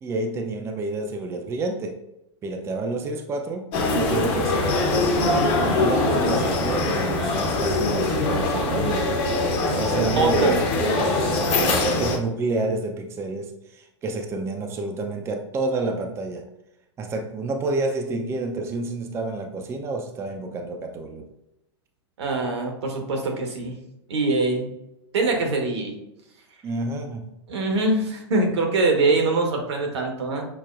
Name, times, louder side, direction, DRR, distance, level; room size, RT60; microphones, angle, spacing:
voice 1, 0.0-2.0 2.4-5.2 5.6-9.1 9.7-16.4 17.0-21.3 26.6-27.3, right 2 dB, 20° right, 4 dB, 0.4 m, -29 dB
sound 1, 3.7-12.2, left 2 dB, 40° left, 0.8 m, -22 dB
voice 2, 10.1-10.6 22.2-23.7 24.1-24.7 25.1-26.0 27.5-30.5, right 3 dB, 70° right, 2 dB, 1.1 m, -23 dB
5.8 x 2.2 x 2.4 m, 0.87 s
hypercardioid pair, 105°, 15 cm